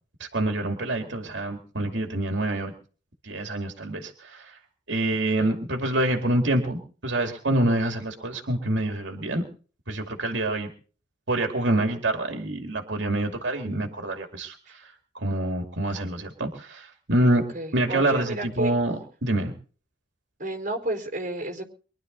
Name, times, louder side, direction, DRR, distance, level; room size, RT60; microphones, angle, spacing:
voice 1, 0.2-2.7 3.2-4.6 4.9-9.4 9.9-10.7 11.3-17.4 17.7-18.9 19.2-19.5, right 1 dB, 75° right, 3 dB, 2.4 m, -26 dB
voice 2, 1.0-1.6 5.4-5.5 17.5-18.7 20.4-21.7, right 1 dB, 40° right, 3 dB, 4.6 m, -32 dB
24.0 x 12.0 x 4.0 m, 0.41 s
head